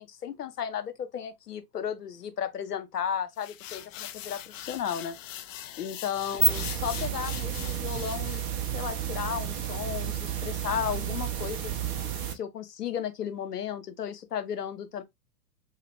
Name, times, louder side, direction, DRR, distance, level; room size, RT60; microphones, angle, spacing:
voice 1, 0.0-5.2 5.8-8.4 8.7-11.7 12.3-15.0, left 8 dB, 75° left, 0.8 m, -34 dB
sound 1, 3.4-8.5, left 11 dB, 55° left, 0.5 m, -42 dB
sound 2, 6.2-12.3, right 8 dB, 20° right, 0.5 m, -31 dB
3.7 x 2.4 x 3.0 m
figure-of-eight pair, 105°, 47 cm